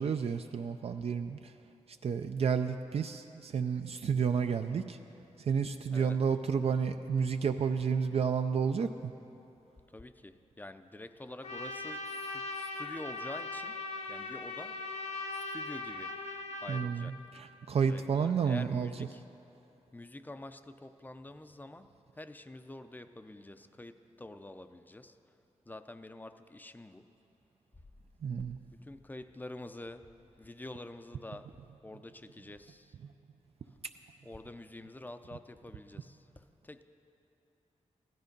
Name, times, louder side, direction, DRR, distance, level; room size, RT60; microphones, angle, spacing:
voice 1, 0.0-1.5 2.0-5.0 5.5-9.1 16.7-18.9 28.2-28.6, right 6 dB, 55° right, 7 dB, 0.4 m, -31 dB
voice 2, 9.9-13.8 14.1-14.8 15.5-16.1 16.6-17.2 17.9-19.2 19.9-25.2 25.7-27.1 28.7-30.1 30.4-32.9 34.2-36.8, left 2 dB, 15° left, 10 dB, 0.5 m, -47 dB
Trumpet, 11.4-16.9, left 2 dB, 65° left, 1.0 m, -39 dB
16.0 x 12.0 x 5.2 m, 2.9 s
wide cardioid pair, 110°, 12 cm